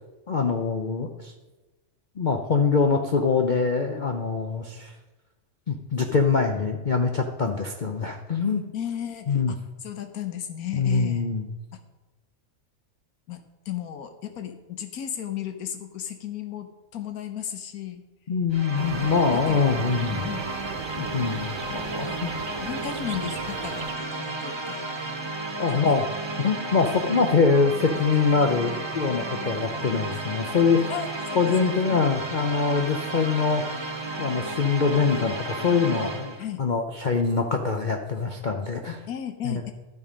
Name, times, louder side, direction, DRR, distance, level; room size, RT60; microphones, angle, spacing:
voice 1, 0.3-1.3 2.2-4.9 5.7-8.6 9.3-9.5 10.7-11.4 18.3-20.3 21.0-22.3 25.6-26.0 26.4-30.9 31.3-33.8 34.2-39.0 39.4-39.6, left 5 dB, 45° left, 4 dB, 0.6 m, -24 dB
voice 2, 8.7-11.2 11.7-11.8 13.3-13.4 13.7-18.0 19.0-20.5 22.1-22.3 22.6-24.9 25.7-26.0 26.9-27.0 30.9-31.5 31.9-32.0 36.4-36.6 39.1-39.7, left 10 dB, 80° left, 8 dB, 1.3 m, -35 dB
sound 1, 18.5-36.4, right 2 dB, 25° right, 0.8 m, -33 dB
sound 2, 18.7-23.9, right 7 dB, 85° right, 0.4 m, -38 dB
12.0 x 7.2 x 5.1 m, 1.1 s
omnidirectional pair, 1.6 m